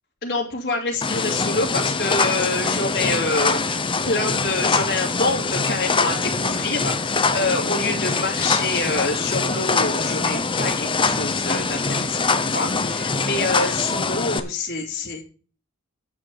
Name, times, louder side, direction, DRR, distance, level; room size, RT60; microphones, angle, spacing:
voice 1, 0.2-15.2, left 3 dB, 45° left, -4 dB, 2.7 m, -26 dB
sound 1, 1.0-14.4, left 4 dB, 20° left, 0.8 m, -23 dB
9.8 x 6.5 x 7.3 m, 0.39 s
head